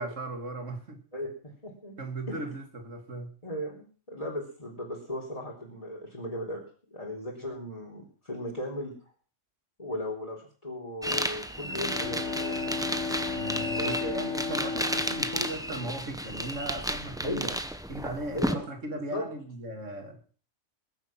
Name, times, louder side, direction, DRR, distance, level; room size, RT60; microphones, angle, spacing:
voice 1, 0.0-1.0 2.0-3.3 13.3-17.5 17.9-20.2, right 1 dB, 90° right, 5 dB, 2.8 m, -37 dB
voice 2, 1.1-2.0 2.3-2.4 3.4-6.6 6.9-8.9 9.8-12.6 13.8-14.2 17.2-17.6 18.3-18.6 19.1-19.2, left 1 dB, 30° left, -3 dB, 3.7 m, -36 dB
sound 1, 11.0-18.5, equal, 5° right, 1.1 m, -33 dB
Bowed string instrument, 11.3-16.8, left 4 dB, 85° left, 5.0 m, -35 dB
21.0 x 10.5 x 6.0 m, 0.42 s
omnidirectional pair, 1.2 m